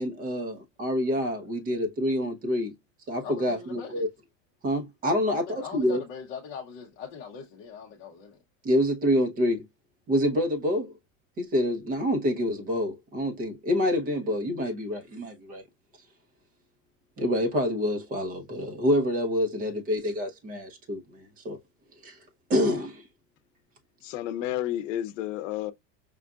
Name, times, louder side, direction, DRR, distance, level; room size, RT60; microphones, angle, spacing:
voice 1, 0.0-2.7 3.1-4.1 4.6-6.0 8.6-9.6 10.1-10.9 11.4-15.6 17.2-21.6 22.0-22.2 22.5-23.0, equal, 20° right, 0.8 m, -27 dB
voice 2, 3.2-4.1 5.3-8.4, left 7 dB, 40° left, 0.7 m, -41 dB
voice 3, 24.0-25.7, left 12 dB, 70° left, 0.8 m, -31 dB
5.4 x 2.4 x 2.3 m
supercardioid pair, 175°, 38 cm